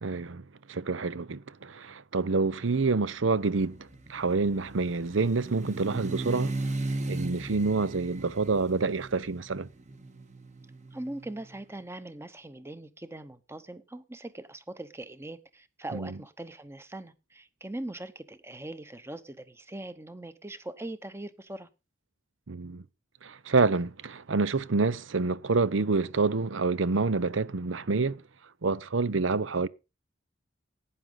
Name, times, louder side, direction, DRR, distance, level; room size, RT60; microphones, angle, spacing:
voice 1, 0.0-6.6 7.1-9.7 15.9-16.1 22.5-22.8 23.2-28.2 28.6-29.7, right 4 dB, 85° right, 0.7 m, -27 dB
sound 1, 3.4-11.4, right 2 dB, 35° right, 1.4 m, -37 dB
voice 2, 10.9-21.7, right 1 dB, 15° right, 0.9 m, -41 dB
11.5 x 9.4 x 5.4 m
head